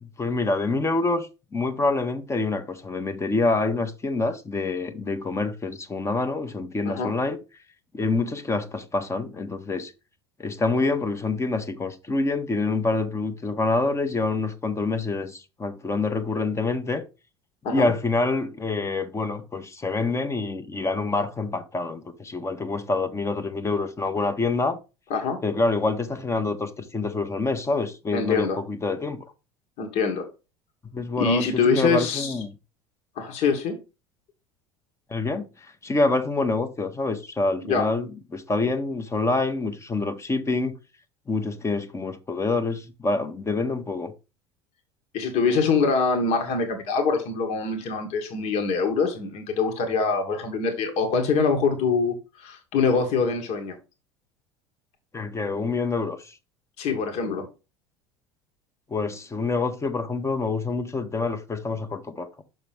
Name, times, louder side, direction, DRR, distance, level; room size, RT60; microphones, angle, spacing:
voice 1, 0.0-7.4 7.9-9.9 10.4-17.0 17.7-24.8 25.4-29.2 30.9-32.5 35.1-35.5 35.8-40.7 41.3-44.1 55.1-56.3 58.9-62.3, left 3 dB, 20° left, 1.1 m, -26 dB
voice 2, 28.1-28.6 29.8-30.3 31.2-32.3 33.1-33.8 37.6-37.9 45.1-53.8 56.8-57.5, left 4 dB, 50° left, 1.7 m, -24 dB
6.4 x 6.1 x 3.4 m
figure-of-eight pair, 70°, 14 cm